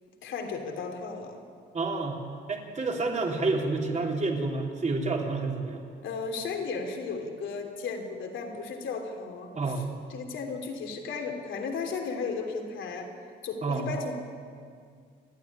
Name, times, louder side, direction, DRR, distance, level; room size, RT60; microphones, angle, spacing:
voice 1, 0.2-1.4 6.0-9.5 10.1-13.1 13.4-14.1, left 4 dB, 75° left, 4 dB, 3.2 m, -34 dB
voice 2, 1.7-2.2 2.5-5.8 9.5-9.9 13.6-13.9, right 3 dB, 35° right, 1 dB, 3.5 m, -29 dB
29.0 x 9.8 x 10.0 m, 2.2 s
cardioid pair, 90°, 20 cm